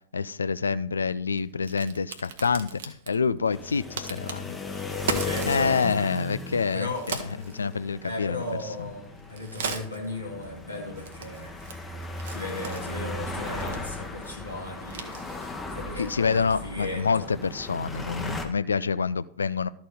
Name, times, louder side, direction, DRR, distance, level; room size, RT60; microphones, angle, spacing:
voice 1, 0.1-4.6 5.5-7.2 7.5-8.4 16.0-19.7, left 5 dB, 75° left, 0.3 m, -27 dB
Crack, 0.6-16.7, right 5 dB, 60° right, 0.9 m, -40 dB
sound 1, 3.5-18.5, left 2 dB, 10° left, 1.0 m, -37 dB
voice 2, 5.2-5.8 6.7-7.1 8.0-11.6 12.3-15.2 15.7-17.3, left 2 dB, 90° left, 1.8 m, -36 dB
12.5 x 4.4 x 5.0 m
figure-of-eight pair, 90°, 0 cm